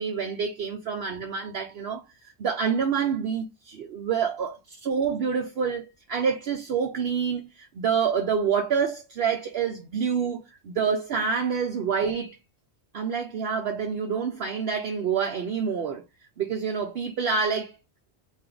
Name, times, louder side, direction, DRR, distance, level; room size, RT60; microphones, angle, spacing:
voice 1, 0.0-12.4 12.9-16.0 16.4-17.8, right 6 dB, 65° right, 0.8 m, -27 dB
3.4 x 2.7 x 3.8 m
omnidirectional pair, 1.2 m